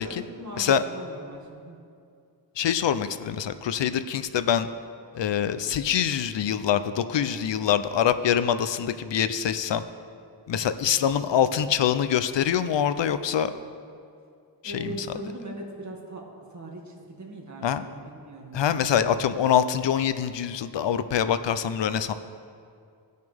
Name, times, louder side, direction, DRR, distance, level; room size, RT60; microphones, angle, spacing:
voice 1, 0.0-1.8 10.5-10.9 11.2-11.7 14.6-16.2 16.5-18.9, right 1 dB, 40° right, -1 dB, 2.2 m, -40 dB
voice 2, 2.6-4.7 5.1-9.8 10.5-13.5 14.6-15.0 17.6-17.8 18.5-22.1, left 9 dB, 70° left, 12 dB, 0.6 m, -24 dB
19.0 x 6.6 x 3.5 m, 2.4 s
wide cardioid pair, 85°, 45 cm